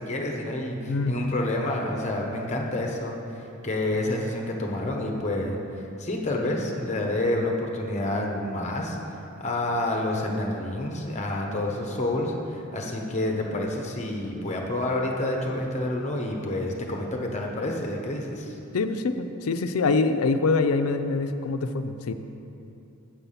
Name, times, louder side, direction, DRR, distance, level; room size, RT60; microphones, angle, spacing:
voice 1, 0.0-3.2 3.6-5.6 6.0-9.0 9.4-18.5, left 1 dB, 35° left, 1 dB, 1.0 m, -28 dB
voice 2, 0.9-1.2 18.7-22.1, left 3 dB, 85° left, 9 dB, 0.5 m, -25 dB
7.6 x 6.9 x 5.6 m, 2.9 s
head